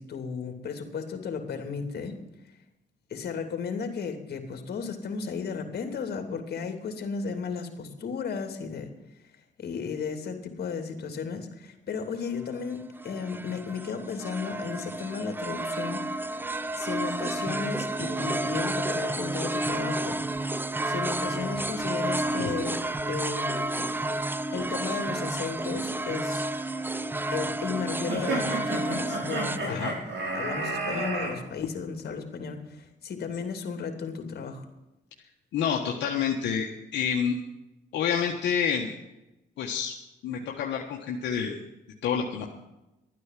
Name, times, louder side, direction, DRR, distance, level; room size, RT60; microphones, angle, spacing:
voice 1, 0.0-2.2 3.1-8.9 9.6-16.1 16.7-20.2 20.8-22.8 23.1-23.9 24.5-26.5 27.3-29.9 30.3-34.6, left 5 dB, 60° left, 6 dB, 2.9 m, -34 dB
sound 1, 12.5-29.6, right 2 dB, 10° right, 0.7 m, -31 dB
sound 2, 28.1-31.3, right 2 dB, 80° right, 5.2 m, -31 dB
voice 2, 35.5-37.4 37.9-38.9 39.6-39.9 40.2-41.6 42.0-42.5, left 7 dB, 80° left, 0 dB, 1.5 m, -28 dB
13.0 x 9.6 x 7.6 m, 0.96 s
cardioid pair, 85°, 18 cm